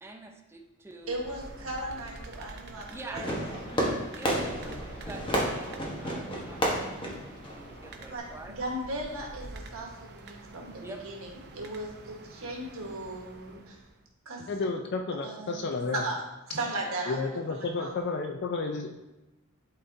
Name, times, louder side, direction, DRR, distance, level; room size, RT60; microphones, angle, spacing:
voice 1, 0.0-1.3 2.9-8.6 10.8-11.0, right 2 dB, 10° right, 3 dB, 0.6 m, -46 dB
sound 1, 1.0-14.0, right 2 dB, 50° right, 0.7 m, -47 dB
voice 2, 1.1-3.3 8.1-13.8 14.2-14.5 15.2-15.6 15.9-16.2 16.5-17.9, right 1 dB, 75° right, 0 dB, 1.4 m, -37 dB
Fireworks, 3.1-8.2, equal, 25° left, 1.1 m, -31 dB
voice 3, 14.5-16.0 17.1-18.9, left 3 dB, 50° left, 4 dB, 0.5 m, -31 dB
11.0 x 4.2 x 2.7 m, 1.0 s
head